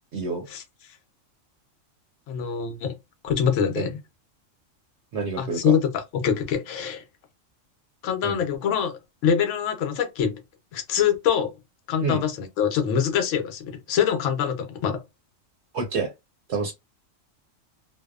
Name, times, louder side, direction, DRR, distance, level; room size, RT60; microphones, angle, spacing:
voice 1, 0.1-0.5 3.8-3.9 5.1-5.8 8.2-8.4 12.0-12.2 15.7-16.1 16.5-16.7, right 4 dB, 65° right, 0.9 m, -28 dB
voice 2, 2.3-2.9 3.2-3.9 5.4-5.8 6.2-7.0 8.0-10.3 10.7-11.5 11.9-15.0, left 8 dB, 70° left, 1.0 m, -24 dB
2.6 x 2.0 x 2.3 m
omnidirectional pair, 1.4 m